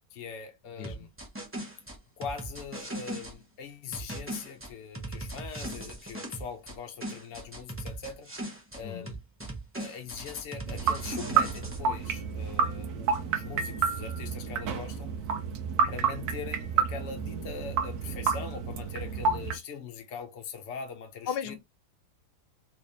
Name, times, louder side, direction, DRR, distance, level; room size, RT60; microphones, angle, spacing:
voice 1, 0.1-1.1 2.2-8.3 8.7-9.2 9.7-15.1 15.9-21.6, left 6 dB, 55° left, 0.9 m, -41 dB
voice 2, 0.8-1.1 8.8-9.1 21.3-21.6, left 8 dB, 80° left, 1.3 m, -35 dB
sound 1, 0.8-3.3 3.9-6.8 7.0-8.8 9.1-11.8, right 1 dB, 10° right, 0.6 m, -39 dB
sound 2, 10.7-19.6, right 6 dB, 75° right, 1.1 m, -30 dB
3.3 x 3.2 x 2.7 m
omnidirectional pair, 1.7 m